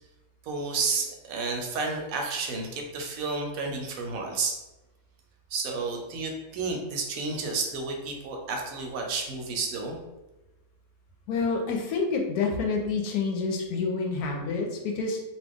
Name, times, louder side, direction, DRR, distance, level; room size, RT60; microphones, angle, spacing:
voice 1, 0.4-4.5 5.5-10.0, right 4 dB, 75° right, 2 dB, 1.0 m, -31 dB
voice 2, 11.3-15.2, left 4 dB, 85° left, 2 dB, 1.2 m, -28 dB
2.9 x 2.3 x 3.4 m, 1.1 s
omnidirectional pair, 1.6 m